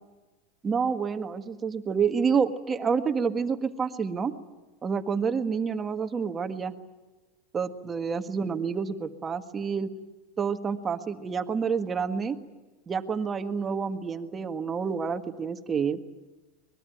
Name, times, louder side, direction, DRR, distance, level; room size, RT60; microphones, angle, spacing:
voice 1, 0.6-4.3 4.8-6.7 7.5-9.9 10.4-12.4 12.9-16.0, right 6 dB, 20° right, 8 dB, 1.6 m, -28 dB
24.0 x 21.5 x 9.2 m, 1.2 s
supercardioid pair, 125°, 0 cm